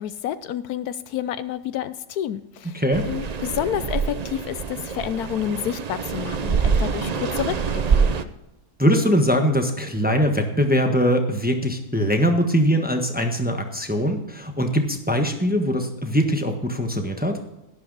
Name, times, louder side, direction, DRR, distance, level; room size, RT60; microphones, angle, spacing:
voice 1, 0.0-8.0, left 10 dB, 75° left, 14 dB, 1.0 m, -29 dB
voice 2, 2.7-3.1 8.8-17.4, equal, 5° right, 4 dB, 1.1 m, -21 dB
sound 1, 2.9-8.2, right 5 dB, 65° right, 0.4 m, -25 dB
12.0 x 11.5 x 4.0 m, 0.91 s
omnidirectional pair, 1.7 m